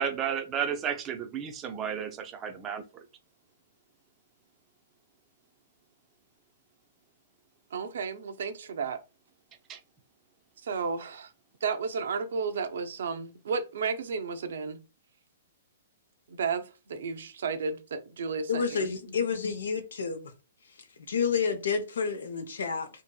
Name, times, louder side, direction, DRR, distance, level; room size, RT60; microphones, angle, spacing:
voice 1, 0.0-2.8 9.7-9.8, right 8 dB, 25° right, 0.5 m, -32 dB
voice 2, 7.7-9.0 10.6-11.3 11.6-14.8 16.3-18.9, right 5 dB, 70° right, 0.5 m, -33 dB
voice 3, 18.5-20.3 21.1-22.9, left 6 dB, 80° left, 0.7 m, -29 dB
2.7 x 2.6 x 2.2 m
hypercardioid pair, 135°, 0 cm